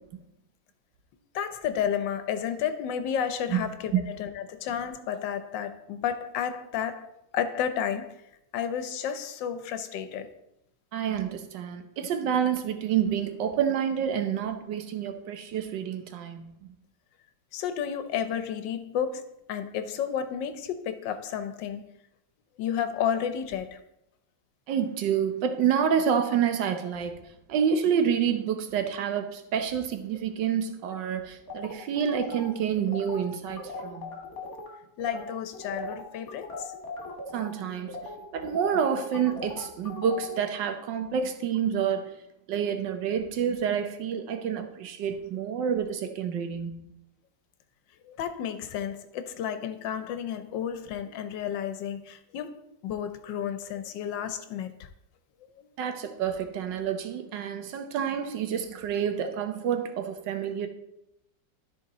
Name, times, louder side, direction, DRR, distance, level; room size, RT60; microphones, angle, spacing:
voice 1, 1.3-3.9 4.2-7.1 7.3-8.1 8.5-10.3 17.5-19.2 19.5-21.9 22.6-23.8 35.0-36.7 48.1-54.7 55.6-55.7, left 8 dB, 85° left, 1.4 m, -31 dB
voice 2, 10.9-16.5 24.7-27.2 27.5-34.1 37.3-38.0 38.3-42.1 42.5-46.9 55.8-60.7, right 8 dB, 80° right, 1.5 m, -28 dB
sound 1, 31.5-34.7 35.0-35.2 35.5-40.3, left 2 dB, 55° left, 1.9 m, -39 dB
12.5 x 4.3 x 4.1 m
omnidirectional pair, 1.9 m